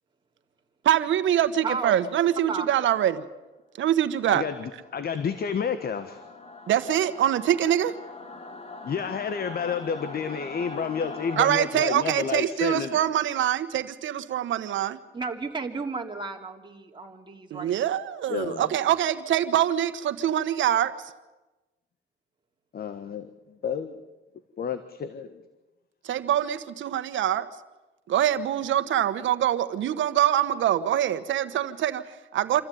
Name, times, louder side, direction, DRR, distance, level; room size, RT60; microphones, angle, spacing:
voice 1, 0.8-3.2 3.8-4.4 6.7-7.9 11.4-15.0 17.5-20.9 26.0-27.5 28.1-32.6, right 11 dB, 75° right, 12 dB, 1.4 m, -24 dB
voice 2, 1.6-2.1 2.5-2.7 15.1-17.7, right 4 dB, 25° right, 1 dB, 3.0 m, -33 dB
voice 3, 4.3-6.2 8.8-12.9 18.3-18.7 22.7-23.3 23.6-24.0 24.6-25.4, left 6 dB, 50° left, 11 dB, 1.5 m, -30 dB
Singing / Musical instrument, 4.4-11.4, left 3 dB, 30° left, 2.6 m, -42 dB
26.0 x 14.5 x 9.4 m, 1.1 s
cardioid pair, 90°, 20 cm